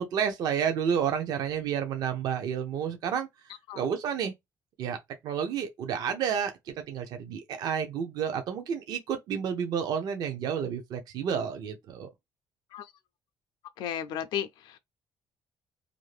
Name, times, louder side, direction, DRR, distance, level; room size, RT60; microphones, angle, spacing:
voice 1, 0.0-3.3 3.7-4.3 4.8-5.0 5.2-6.5 6.9-12.1, right 7 dB, 55° right, 0.5 m, -30 dB
voice 2, 13.8-14.8, left 9 dB, 80° left, 0.4 m, -34 dB
2.5 x 2.5 x 3.1 m
cardioid pair, 180°, 8 cm